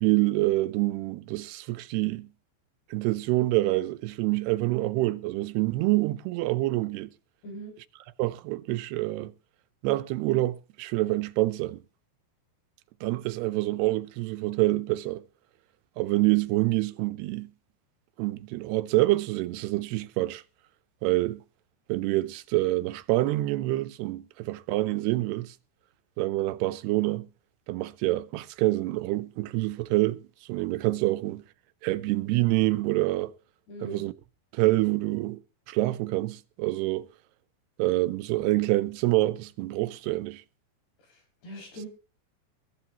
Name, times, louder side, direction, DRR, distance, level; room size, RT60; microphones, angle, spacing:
voice 1, 0.0-2.3 2.9-7.1 8.2-9.3 9.8-11.8 13.0-15.2 16.0-17.5 18.2-20.4 21.0-21.4 21.9-25.5 26.2-27.3 27.7-31.4 31.8-33.3 33.8-34.1 34.5-35.4 35.7-37.1 37.8-40.4, right 18 dB, 90° right, 2.8 m, -26 dB
voice 2, 7.4-7.7 33.7-34.1 41.0-41.9, right 1 dB, 85° left, 8.1 m, -41 dB
21.5 x 12.0 x 2.9 m
omnidirectional pair, 4.6 m